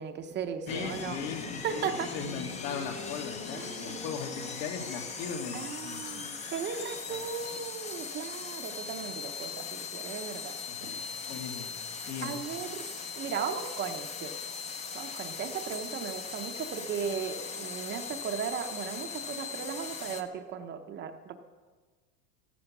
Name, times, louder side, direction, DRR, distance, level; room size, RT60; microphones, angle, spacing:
voice 1, 0.0-1.2 1.6-2.1 3.5-4.0 5.5-11.2 12.0-12.8 13.2-14.3 14.9-21.3, right 7 dB, 20° right, 6 dB, 0.7 m, -37 dB
voice 2, 0.7-6.3 7.1-7.2 10.8-11.0 11.3-11.7 12.1-12.4, left 6 dB, 80° left, 2 dB, 3.0 m, -38 dB
sound 1, 0.7-20.2, left 5 dB, 15° left, 0.6 m, -39 dB
14.5 x 14.0 x 6.0 m, 1.4 s
supercardioid pair, 155°, 49 cm